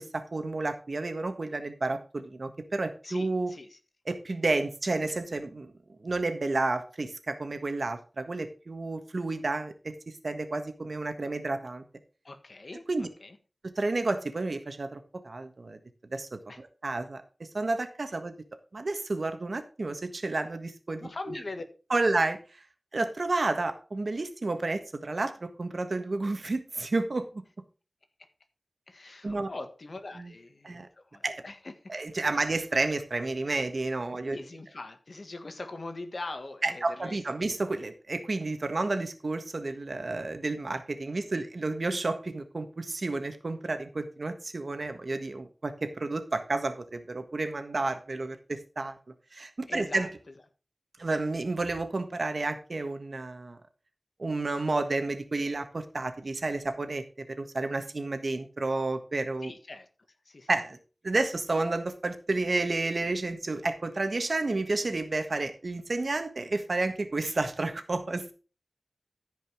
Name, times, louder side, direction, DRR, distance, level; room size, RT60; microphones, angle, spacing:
voice 1, 0.0-3.5 4.1-5.7 6.0-11.8 12.9-13.1 13.7-15.8 16.1-18.3 18.7-21.1 21.9-22.4 22.9-27.3 29.2-29.5 30.2-30.3 30.6-30.9 31.2-31.4 31.9-34.4 36.6-49.0 49.3-50.1 51.0-53.6 54.2-59.5 60.5-60.8 61.0-68.3, right 2 dB, 70° right, 1.5 m, -31 dB
voice 2, 3.0-3.8 12.2-13.4 16.5-16.6 21.0-21.6 21.9-22.1 28.9-31.9 34.1-37.2 41.3-41.5 49.7-50.1 59.4-59.9 60.2-60.5, left 2 dB, 70° left, 1.6 m, -42 dB
14.0 x 5.3 x 5.0 m
wide cardioid pair, 65°, 0 cm